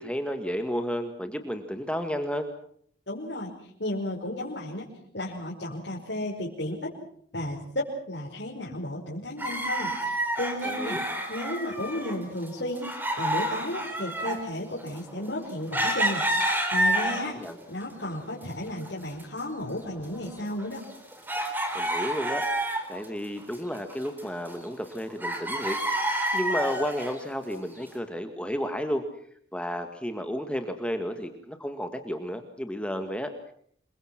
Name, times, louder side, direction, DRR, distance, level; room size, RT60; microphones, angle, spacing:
voice 1, 0.0-2.5 10.6-11.0 17.3-17.6 21.7-22.4 22.9-29.1 29.5-33.5, equal, 5° left, 7 dB, 1.8 m, -32 dB
voice 2, 3.1-4.9 5.1-6.9 7.3-11.0 11.3-17.4 17.7-20.8, left 1 dB, 65° left, -4 dB, 5.3 m, -33 dB
sound 1, 9.4-12.2 12.4-17.5 18.0-18.9 19.1-19.2 19.8-23.1 23.4-24.9 25.2-27.2 27.8-27.9, right 1 dB, 10° right, 4.1 m, -29 dB
28.0 x 23.5 x 6.0 m, 0.62 s
head